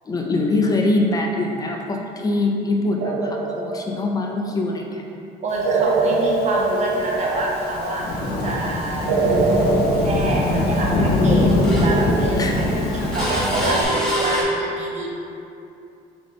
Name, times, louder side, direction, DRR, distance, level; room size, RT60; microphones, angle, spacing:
voice 1, 0.0-5.0 12.4-12.9, left 2 dB, 20° left, 1 dB, 0.5 m, -23 dB
sound 1, 3.0-4.4 5.6-7.8 9.1-11.2, right 3 dB, 90° right, 0.5 m, -23 dB
voice 2, 5.4-8.1 8.4-15.1, right 2 dB, 45° right, -2 dB, 0.8 m, -26 dB
Thunderstorm / Rain, 6.1-13.8, left 2 dB, 75° left, 0.7 m, -23 dB
sound 2, 10.5-11.2 11.5-14.4, right 1 dB, 5° left, 0.9 m, -26 dB
4.0 x 3.5 x 3.4 m, 2.6 s
cardioid pair, 110°, 17 cm